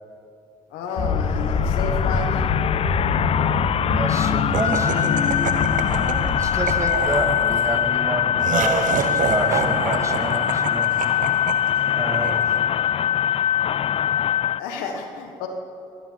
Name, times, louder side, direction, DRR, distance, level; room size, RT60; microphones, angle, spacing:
voice 1, 0.7-2.3 14.6-15.5, left 4 dB, 90° left, 4 dB, 1.5 m, -30 dB
sound 1, 0.9-14.6, left 10 dB, 40° left, 0.4 m, -23 dB
sound 2, 1.0-7.8, left 5 dB, 70° left, 2.0 m, -25 dB
voice 2, 3.9-5.2 5.9-11.0 11.9-12.6, right 2 dB, 20° right, 4 dB, 2.2 m, -29 dB
Laughter, 4.5-12.9, right 9 dB, 65° right, 0.8 m, -29 dB
22.5 x 11.0 x 5.7 m, 2.5 s
supercardioid pair, 75°, 15 cm